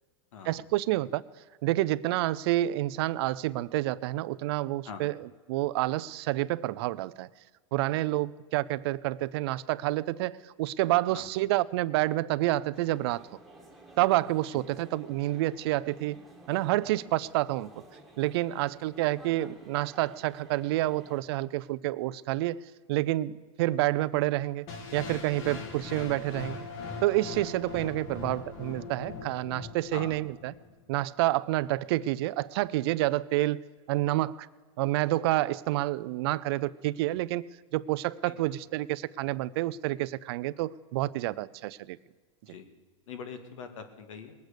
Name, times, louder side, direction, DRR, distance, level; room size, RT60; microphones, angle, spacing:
voice 1, 0.4-1.2 1.6-7.3 7.7-13.2 14.0-16.2 16.5-17.8 18.2-22.6 22.9-24.7 24.9-26.6 27.0-30.5 30.9-33.6 33.9-34.5 34.8-37.4 37.7-42.0, right 16 dB, 50° right, 18 dB, 0.5 m, -28 dB
sound 1, 12.7-21.2, right 1 dB, ahead, 1.7 m, -53 dB
sound 2, 24.7-30.7, left 4 dB, 50° left, 2.4 m, -41 dB
voice 2, 43.1-44.3, left 6 dB, 75° left, 8 dB, 2.1 m, -43 dB
20.5 x 8.2 x 6.6 m, 1.4 s
supercardioid pair, 150°, 17 cm